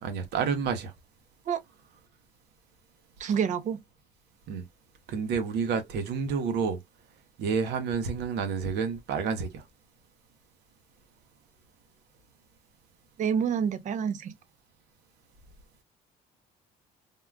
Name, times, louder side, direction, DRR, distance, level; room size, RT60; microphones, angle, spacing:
voice 1, 0.0-0.9 4.5-4.6 5.1-6.8 7.4-9.6, right 5 dB, 80° right, 0.8 m, -29 dB
voice 2, 3.2-3.8 13.2-14.3, right 7 dB, 45° right, 0.5 m, -28 dB
3.6 x 2.3 x 2.2 m
cardioid pair, 110°, 17 cm